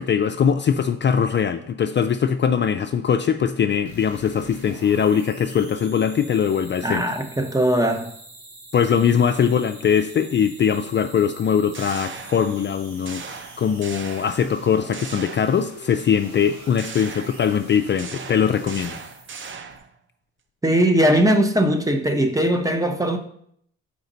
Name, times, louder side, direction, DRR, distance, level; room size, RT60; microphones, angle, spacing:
voice 1, 0.0-7.0 8.7-19.0, left 7 dB, 40° left, 0.4 m, -21 dB
sound 1, 3.9-19.8, right 2 dB, 65° right, 2.2 m, -45 dB
voice 2, 6.8-8.1 20.6-23.2, right 1 dB, 10° right, 0.8 m, -20 dB
machine gun, 11.4-12.7 13.0-14.6 14.9-16.0 16.8-19.9, right 5 dB, 40° right, 0.7 m, -38 dB
6.9 x 5.1 x 3.9 m
cardioid pair, 90°, 30 cm